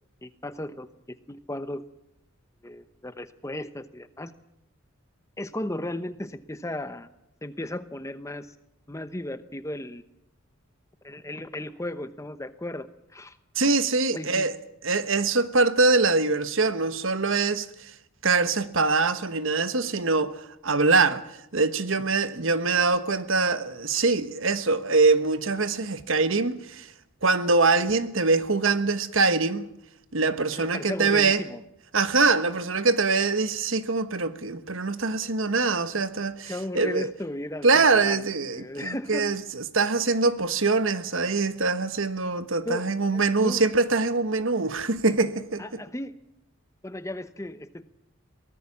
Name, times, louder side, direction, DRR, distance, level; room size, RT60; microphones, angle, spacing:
voice 1, 0.2-1.8 2.6-4.3 5.4-7.1 7.4-8.5 8.9-10.0 11.0-12.9 13.1-13.4 14.1-14.5 30.5-31.6 36.5-39.3 42.6-43.6 45.6-46.1 46.8-47.8, left 1 dB, 15° left, 0.9 m, -35 dB
voice 2, 13.5-14.5 14.8-17.9 18.2-21.2 21.5-26.9 27.2-29.7 30.1-31.4 31.9-37.1 37.6-45.8, right 3 dB, 70° right, 1.3 m, -23 dB
23.5 x 18.0 x 7.3 m
head